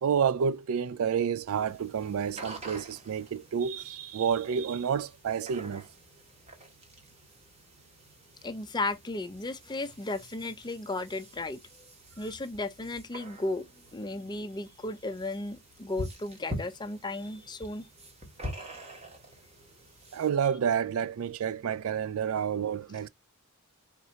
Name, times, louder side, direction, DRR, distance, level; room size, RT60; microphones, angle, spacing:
voice 1, 0.0-5.9 20.1-23.1, right 7 dB, 65° right, 0.3 m, -29 dB
sound 1, 1.5-20.3, equal, 30° right, 1.2 m, -46 dB
voice 2, 8.4-11.6 12.2-13.6 13.9-17.9, left 2 dB, 20° left, 0.5 m, -35 dB
3.7 x 2.6 x 4.3 m
head